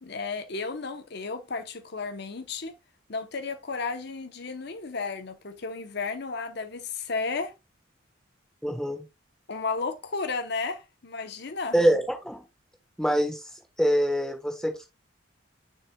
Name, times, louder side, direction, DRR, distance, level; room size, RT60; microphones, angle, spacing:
voice 1, 0.0-2.7 3.1-7.5 9.5-11.8, left 4 dB, 55° left, 0.9 m, -33 dB
voice 2, 8.6-9.0 11.7-12.4 13.0-13.4 13.8-14.9, equal, 5° left, 1.2 m, -24 dB
6.6 x 6.5 x 2.3 m
head